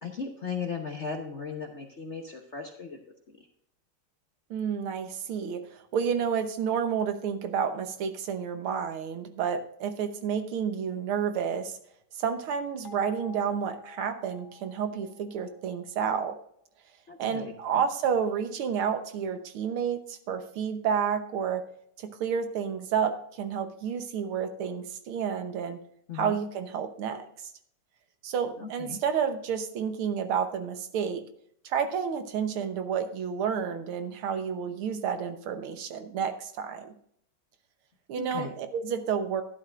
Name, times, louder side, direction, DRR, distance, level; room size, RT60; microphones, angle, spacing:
voice 1, 0.0-3.0 17.1-17.5 26.1-26.4 28.6-29.0 38.2-38.5, left 5 dB, 50° left, 3 dB, 0.8 m, -37 dB
voice 2, 4.5-11.8 12.1-16.4 17.2-21.6 22.0-25.8 26.1-27.5 28.2-31.2 31.6-36.9 38.1-39.4, right 7 dB, 75° right, 8 dB, 1.8 m, -30 dB
sound 1, 12.8-15.8, left 4 dB, 70° left, 1.9 m, -49 dB
12.0 x 11.0 x 2.5 m, 0.67 s
omnidirectional pair, 2.4 m